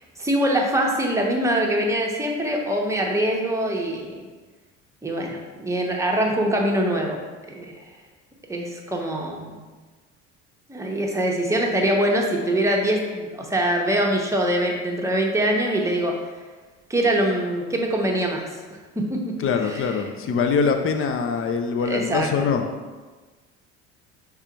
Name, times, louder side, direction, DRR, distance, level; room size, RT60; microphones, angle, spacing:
voice 1, 0.2-4.2 5.0-7.2 7.5-7.7 8.5-9.6 10.7-16.1 16.9-18.4 19.0-19.3 19.6-20.0 21.8-22.3, right 1 dB, 10° right, 0 dB, 0.8 m, -23 dB
voice 2, 19.4-22.6, left 5 dB, 35° left, 6 dB, 0.6 m, -23 dB
4.7 x 3.4 x 2.8 m, 1.3 s
hypercardioid pair, 65°, 35 cm